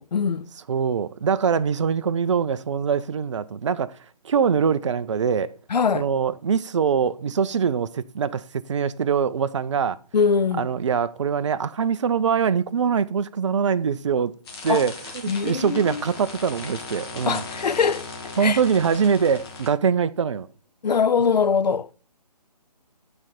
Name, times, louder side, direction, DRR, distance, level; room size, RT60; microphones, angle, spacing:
voice 1, 0.0-0.5 5.7-6.1 10.1-10.7 14.7-14.8 15.3-16.0 17.3-18.1 18.4-18.6 20.8-21.9, left 6 dB, 75° left, 0.5 m, -22 dB
voice 2, 0.7-4.0 4.2-5.5 5.9-10.0 10.6-14.3 14.6-14.9 15.4-17.4 18.4-20.5, right 6 dB, 45° right, 0.4 m, -23 dB
sound 1, 14.4-19.7, left 3 dB, 35° left, 1.6 m, -38 dB
8.7 x 4.4 x 5.0 m
figure-of-eight pair, 150°, 21 cm